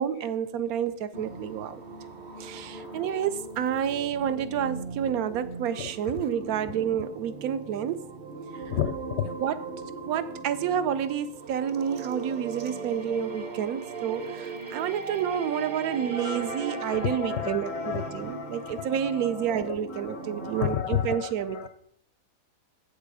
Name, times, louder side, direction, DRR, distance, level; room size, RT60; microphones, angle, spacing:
voice 1, 0.0-1.8 2.4-8.0 8.5-8.6 9.4-9.6 10.1-21.7, right 9 dB, 85° right, 1.1 m, -29 dB
sound 1, 1.1-20.8, right 4 dB, 45° right, 0.6 m, -39 dB
voice 2, 8.7-9.4 16.1-21.7, left 9 dB, 65° left, 0.7 m, -33 dB
7.5 x 6.8 x 4.8 m
omnidirectional pair, 1.5 m